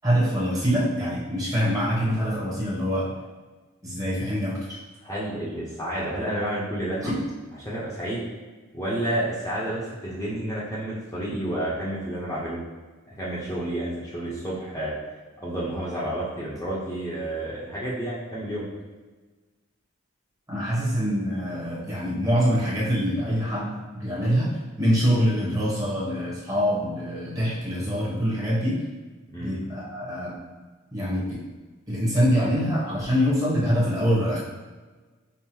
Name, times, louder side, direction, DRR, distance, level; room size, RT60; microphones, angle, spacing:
voice 1, 0.0-3.1 3.8-4.8 7.0-7.2 20.5-28.8 29.4-30.4 30.9-31.4 31.9-34.4, equal, 15° right, -7 dB, 1.0 m, -24 dB
voice 2, 5.0-7.0 7.6-8.2 8.7-12.6 13.2-14.9 15.4-18.7 29.3-29.5, right 1 dB, 15° left, -8 dB, 0.7 m, -30 dB
5.4 x 2.0 x 3.0 m, 1.3 s
head